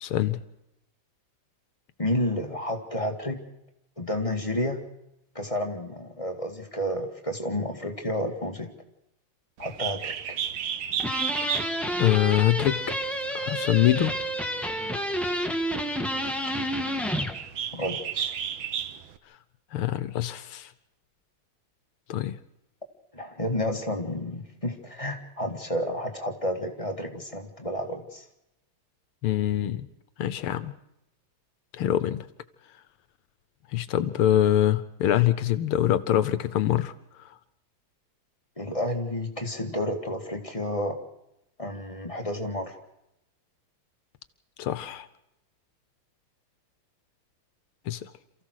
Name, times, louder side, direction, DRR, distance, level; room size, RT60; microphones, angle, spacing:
voice 1, 0.0-0.4 12.0-12.8 13.4-14.1 19.7-20.7 22.1-22.4 29.2-29.9 30.2-30.7 31.7-32.3 33.7-36.9 44.6-45.1 47.9-48.1, left 12 dB, 80° left, 14 dB, 1.8 m, -24 dB
voice 2, 2.0-3.4 4.0-4.9 5.3-8.7 9.6-10.4 17.7-18.4 23.1-28.3 38.6-41.0 41.6-42.8, left 1 dB, 15° left, 3 dB, 2.0 m, -31 dB
Bird, 9.6-19.2, right 9 dB, 70° right, 1.7 m, -34 dB
sound 1, 11.0-17.4, equal, ahead, 1.4 m, -29 dB
28.0 x 15.0 x 6.5 m, 0.86 s
omnidirectional pair, 2.4 m